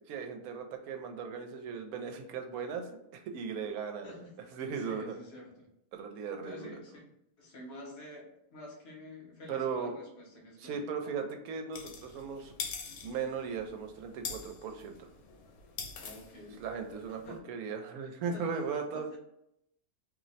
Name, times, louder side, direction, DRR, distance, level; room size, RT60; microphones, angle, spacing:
voice 1, 0.1-4.2 4.5-5.2 5.9-6.7 9.5-9.9 10.6-12.5 13.0-14.9 16.6-19.1, right 6 dB, 85° right, 5 dB, 1.0 m, -37 dB
voice 2, 4.0-5.7 6.4-11.2 16.0-16.6 17.1-17.4 18.3-18.6, left 1 dB, 55° left, 0 dB, 0.9 m, -49 dB
sound 1, 11.7-17.4, left 6 dB, 90° left, 1.1 m, -45 dB
2.7 x 2.0 x 3.9 m, 0.79 s
omnidirectional pair, 1.5 m